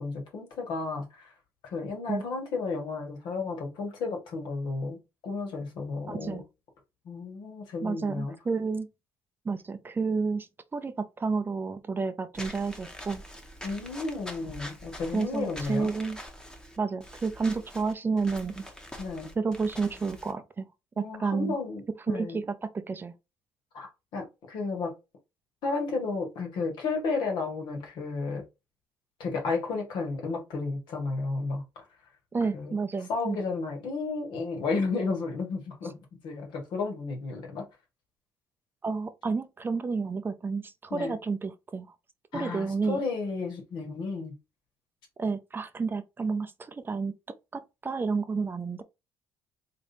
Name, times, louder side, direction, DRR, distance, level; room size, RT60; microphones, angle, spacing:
voice 1, 0.0-1.3 1.6-5.0 5.2-6.4 7.0-8.3 13.6-15.9 19.0-19.3 21.0-22.4 23.7-24.9 25.6-28.4 29.2-31.8 32.5-32.7 33.1-36.0 36.2-37.7 40.9-41.2 42.3-44.4, left 4 dB, 70° left, 1.7 m, -32 dB
voice 2, 6.1-6.4 7.8-8.9 9.4-13.2 15.1-16.2 16.8-18.6 19.4-20.7 21.0-21.6 22.1-23.1 32.3-33.4 38.8-41.9 42.3-43.0 45.2-47.1 47.5-48.8, right 4 dB, 25° right, 0.5 m, -30 dB
Walk footsteps / Squeak, 12.3-20.3, equal, 10° left, 1.1 m, -44 dB
3.8 x 3.4 x 2.7 m
cardioid pair, 90°, 8 cm